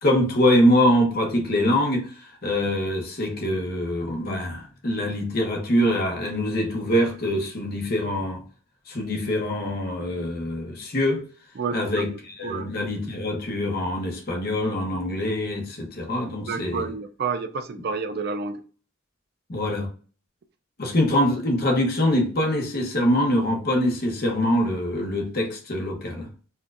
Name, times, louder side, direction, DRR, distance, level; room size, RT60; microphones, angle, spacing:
voice 1, 0.0-8.4 8.9-11.2 11.7-16.8 19.5-19.9 20.8-26.3, left 1 dB, 45° left, 0.9 m, -24 dB
voice 2, 11.6-12.7 16.4-18.6, right 5 dB, 50° right, 0.4 m, -30 dB
4.2 x 2.3 x 2.5 m
head